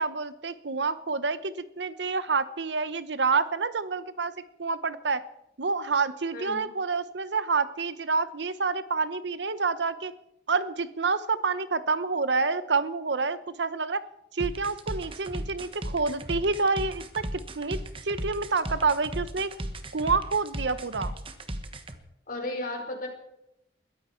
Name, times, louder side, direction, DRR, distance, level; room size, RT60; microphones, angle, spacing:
voice 1, 0.0-4.3 4.6-5.2 5.6-10.1 10.5-14.0 14.3-19.5 19.9-21.1, right 4 dB, 75° right, 14 dB, 1.0 m, -28 dB
voice 2, 6.3-6.7 22.3-23.1, left 2 dB, 50° left, 2 dB, 5.0 m, -34 dB
sound 1, 14.4-22.0, right 1 dB, 30° right, 1.3 m, -35 dB
21.5 x 14.5 x 4.6 m, 0.83 s
head